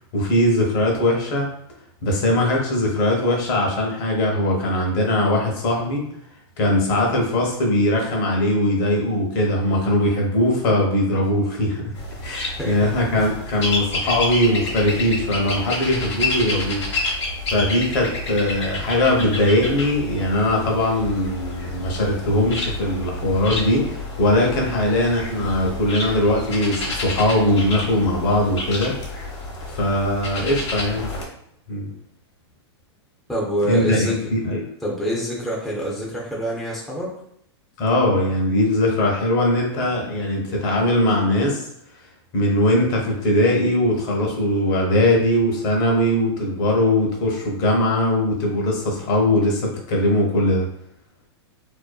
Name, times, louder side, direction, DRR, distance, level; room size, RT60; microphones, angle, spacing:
voice 1, 0.1-1.5 2.0-6.0 6.6-11.9 12.2-17.1 17.5-29.3 29.7-31.1 31.7-31.9 33.6-34.7 37.8-41.6 42.3-50.7, left 1 dB, 50° left, 0 dB, 0.8 m, -20 dB
sound 1, 11.9-31.2, left 2 dB, 85° left, 0.9 m, -29 dB
voice 2, 12.6-13.3 33.3-34.1 34.8-37.1, equal, ahead, -4 dB, 0.4 m, -26 dB
2.6 x 2.2 x 2.2 m, 0.72 s
hypercardioid pair, 130°, 14 cm